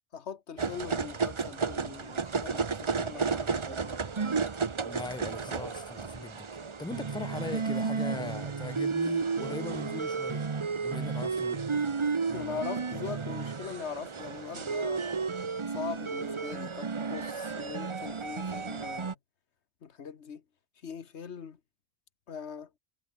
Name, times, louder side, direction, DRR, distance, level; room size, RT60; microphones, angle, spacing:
voice 1, 0.1-4.0 9.3-9.7 11.7-11.9 12.3-15.1 15.7-19.2 19.8-20.4 20.8-21.6 22.3-22.7, left 6 dB, 85° left, 1.6 m, -41 dB
sound 1, 0.6-19.1, right 5 dB, 30° right, 0.7 m, -32 dB
voice 2, 4.8-10.5 10.8-11.6, left 2 dB, 5° left, 0.7 m, -40 dB
omnidirectional pair, 1.1 m